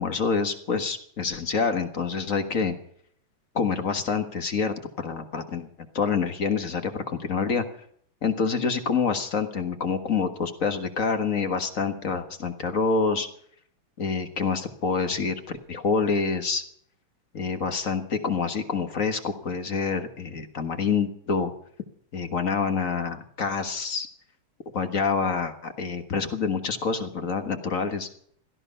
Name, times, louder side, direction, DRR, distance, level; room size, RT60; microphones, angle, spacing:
voice 1, 0.0-2.7 3.5-5.7 5.9-7.6 8.2-13.3 14.0-16.6 17.3-21.5 22.1-24.1 24.7-28.2, left 5 dB, 40° left, 8 dB, 1.7 m, -27 dB
17.0 x 14.0 x 5.4 m, 0.64 s
omnidirectional pair, 2.4 m